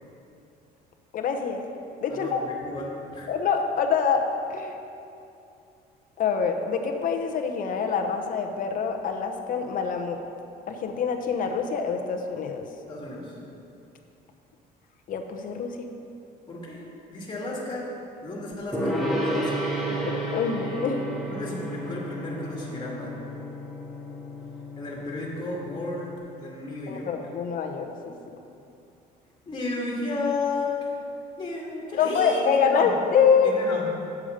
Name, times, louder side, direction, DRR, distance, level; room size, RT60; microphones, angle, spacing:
voice 1, 1.1-1.7 2.0-2.4 3.3-4.8 6.2-10.2 10.7-12.7 15.1-15.8 19.3-19.4 19.9-21.0 26.9-28.1 31.9-33.6, left 6 dB, 55° left, 4 dB, 0.9 m, -25 dB
voice 2, 2.1-3.3 12.9-13.4 16.5-16.8 17.1-17.9 18.2-19.6 21.2-23.2 24.8-27.1 29.5-30.8 31.4-32.9 33.4-33.9, left 2 dB, 25° left, -3 dB, 2.1 m, -33 dB
Gong, 18.7-26.2, right 1 dB, ahead, 1.5 m, -32 dB
8.5 x 7.1 x 5.1 m, 2.7 s
cardioid pair, 110°, 17 cm